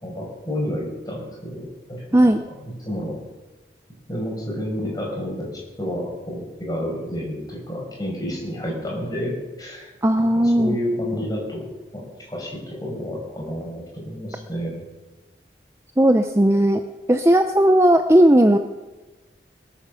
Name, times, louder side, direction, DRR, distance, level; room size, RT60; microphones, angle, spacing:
voice 1, 0.0-3.2 4.1-9.9 10.2-14.8, equal, 20° left, -2 dB, 5.5 m, -30 dB
voice 2, 2.1-2.4 10.0-10.8 16.0-16.8 17.1-18.6, right 1 dB, 15° right, 7 dB, 0.6 m, -16 dB
21.5 x 8.8 x 7.0 m, 1.2 s
head